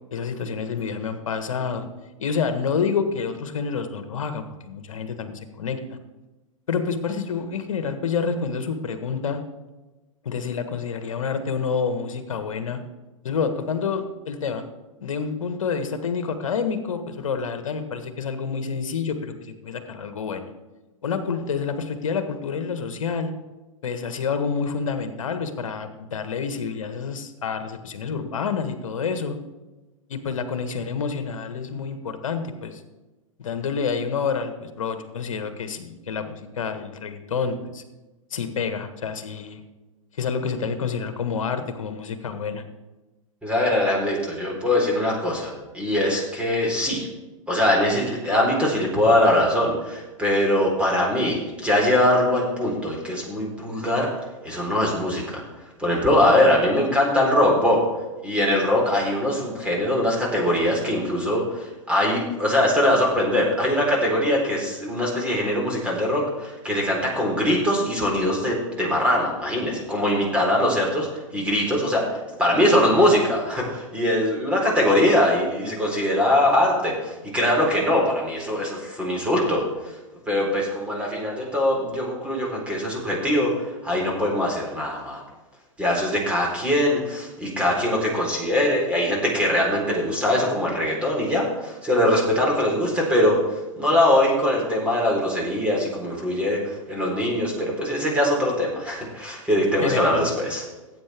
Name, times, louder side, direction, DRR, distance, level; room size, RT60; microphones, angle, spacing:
voice 1, 0.1-1.9 2.2-5.8 6.7-9.4 10.2-12.8 13.2-14.7 15.0-20.5 21.0-23.3 23.8-29.4 30.1-32.8 33.4-37.8 38.3-39.6 40.2-42.6 99.8-100.3, left 5 dB, 70° left, 9 dB, 1.5 m, -28 dB
voice 2, 43.4-47.1 47.5-54.1 54.4-55.4 55.8-57.8 58.2-80.0 80.3-85.2 85.8-100.6, left 1 dB, 5° right, -3 dB, 3.9 m, -22 dB
19.0 x 9.0 x 3.6 m, 1.1 s
figure-of-eight pair, 100°, 17 cm